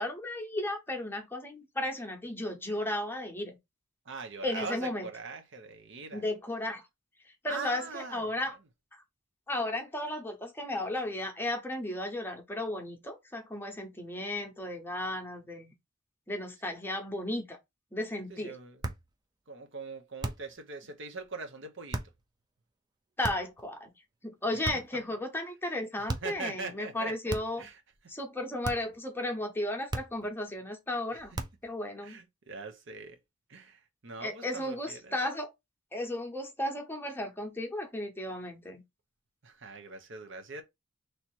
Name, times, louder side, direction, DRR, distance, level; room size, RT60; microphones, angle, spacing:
voice 1, 0.0-3.6 4.4-5.1 6.1-6.8 7.4-8.6 8.9-9.0 9.5-15.7 16.3-17.6 17.9-18.5 23.2-23.9 24.2-27.6 28.1-32.2 34.2-35.5 35.9-38.8, left 1 dB, 10° left, 0.9 m, -34 dB
voice 2, 4.1-6.3 7.5-8.4 18.3-18.8 19.5-22.0 26.2-27.8 31.1-31.2 32.0-33.2 33.5-35.2 39.4-40.6, right 4 dB, 65° right, 0.9 m, -42 dB
sound 1, 18.8-19.1 20.2-20.6 21.9-22.2 23.2-23.6 24.6-25.0 26.1-26.4 27.3-27.7 28.6-29.0 29.9-30.3 31.3-31.7, right 2 dB, 20° right, 0.5 m, -37 dB
3.2 x 2.8 x 4.4 m
head